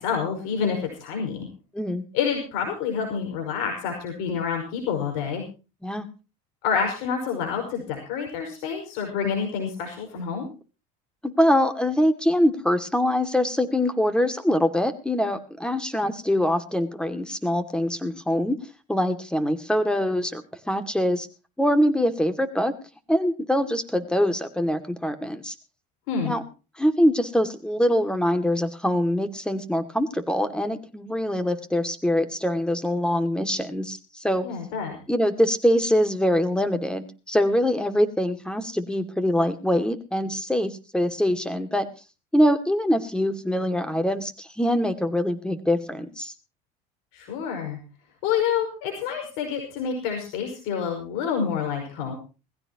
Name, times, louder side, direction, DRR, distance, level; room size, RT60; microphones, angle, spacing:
voice 1, 0.0-1.5 2.1-5.4 6.6-10.5 26.1-26.3 34.4-35.0 47.1-47.8 48.2-52.1, left 7 dB, 80° left, 2 dB, 5.7 m, -28 dB
voice 2, 11.2-18.6 18.9-21.3 21.6-22.7 23.1-25.5 26.2-26.4 26.8-34.4 35.1-41.9 42.3-46.3, equal, 5° left, 9 dB, 2.3 m, -24 dB
21.0 x 16.0 x 3.0 m, 0.33 s
supercardioid pair, 105°, 20 cm